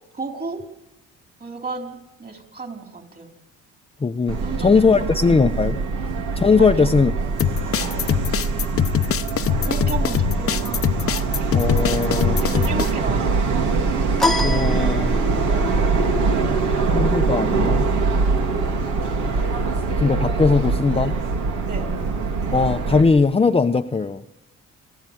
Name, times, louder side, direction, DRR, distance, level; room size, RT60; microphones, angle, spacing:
voice 1, 0.1-0.6 1.4-3.3 4.4-4.7 5.0-5.4 6.6-6.9 7.6-7.9 9.5-10.8 12.4-13.6 21.7-21.9, right 4 dB, 30° right, 4 dB, 4.5 m, -33 dB
voice 2, 4.0-5.8 6.4-7.1 11.5-12.4 14.4-15.2 16.9-17.9 20.0-21.2 22.5-24.2, left 4 dB, 20° left, 6 dB, 0.7 m, -19 dB
Subway metro underground, 4.3-23.0, right 4 dB, 80° right, 2.9 m, -23 dB
sound 1, 7.4-12.9, left 10 dB, 50° left, 0.8 m, -23 dB
sound 2, 14.2-15.6, left 2 dB, ahead, 1.3 m, -24 dB
29.0 x 13.0 x 9.3 m, 0.97 s
cardioid pair, 90°, 30 cm